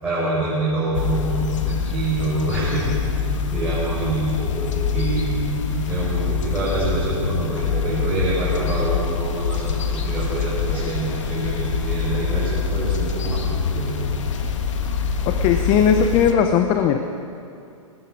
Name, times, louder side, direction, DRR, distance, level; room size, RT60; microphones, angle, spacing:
voice 1, 0.0-14.1, right 2 dB, 5° right, -10 dB, 4.6 m, -26 dB
sound 1, 0.9-16.3, left 5 dB, 65° left, 1.6 m, -25 dB
voice 2, 15.3-17.0, left 7 dB, 25° left, 7 dB, 0.7 m, -18 dB
19.0 x 16.0 x 4.8 m, 2.6 s
hypercardioid pair, 145°, 17 cm